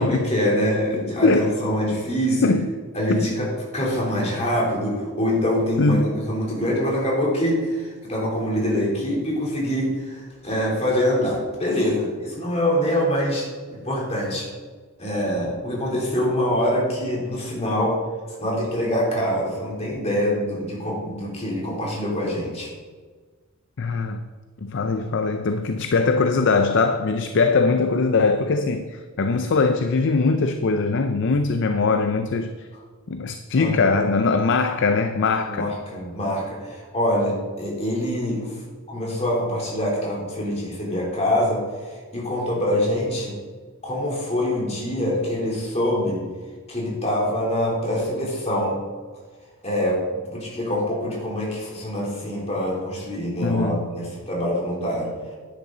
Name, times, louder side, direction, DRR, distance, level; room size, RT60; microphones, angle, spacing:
voice 1, 0.0-2.5 2.9-14.5 15.0-18.0 18.4-22.7 33.5-34.0 35.5-38.6 38.9-43.4 43.8-46.2 46.7-48.8 49.6-50.0 50.3-55.1, equal, 30° left, -4 dB, 3.4 m, -24 dB
voice 2, 5.8-6.2 23.8-24.2 24.6-32.5 33.1-35.7 53.4-53.8, left 4 dB, 60° left, 8 dB, 0.5 m, -21 dB
10.5 x 10.0 x 4.0 m, 1.4 s
head